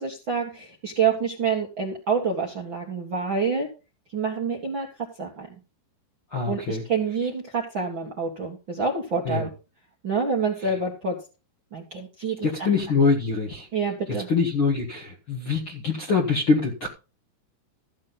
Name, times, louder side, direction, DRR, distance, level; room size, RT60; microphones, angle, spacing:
voice 1, 0.0-3.7 4.1-4.9 5.2-5.5 6.4-9.5 10.0-11.2 11.7-12.4 13.7-14.3, right 5 dB, 50° right, 1.5 m, -27 dB
voice 2, 6.3-6.8 9.2-9.5 10.6-10.7 12.4-13.7 14.1-16.9, left 4 dB, 55° left, 1.5 m, -24 dB
14.5 x 7.4 x 4.1 m
omnidirectional pair, 4.8 m